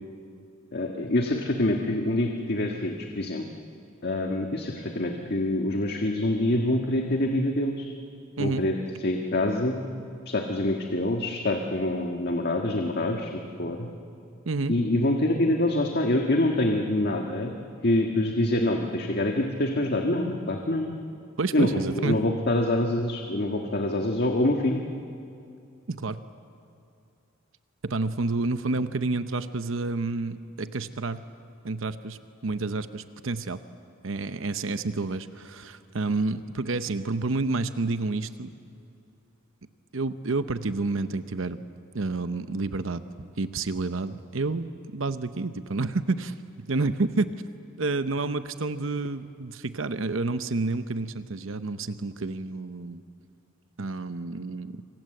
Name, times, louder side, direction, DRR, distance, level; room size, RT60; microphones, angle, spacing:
voice 1, 0.7-3.4 4.0-7.9 8.4-9.8 10.2-13.3 13.6-13.9 14.7-17.5 17.8-20.9 21.5-21.7 21.9-24.8, left 1 dB, 50° left, 2 dB, 1.6 m, -25 dB
voice 2, 14.5-14.8 21.4-22.2 25.9-26.2 27.8-31.2 31.6-33.6 34.0-38.5 39.9-41.6 41.9-43.1 43.4-47.3 47.8-53.0 53.8-54.8, right 3 dB, 70° right, 11 dB, 0.8 m, -29 dB
27.5 x 25.0 x 7.8 m, 2.5 s
head